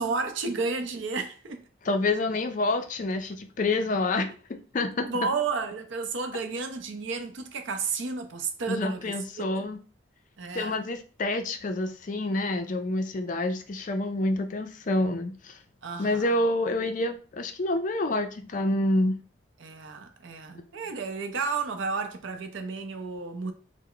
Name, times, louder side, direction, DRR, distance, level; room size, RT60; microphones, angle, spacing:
voice 1, 0.0-1.6 5.0-9.7 10.4-10.8 15.8-16.4 19.6-23.5, right 4 dB, 70° right, 0.5 m, -32 dB
voice 2, 1.8-5.1 8.7-9.8 10.5-15.6 16.0-19.2, left 2 dB, 40° left, 0.4 m, -28 dB
3.2 x 2.0 x 3.7 m
head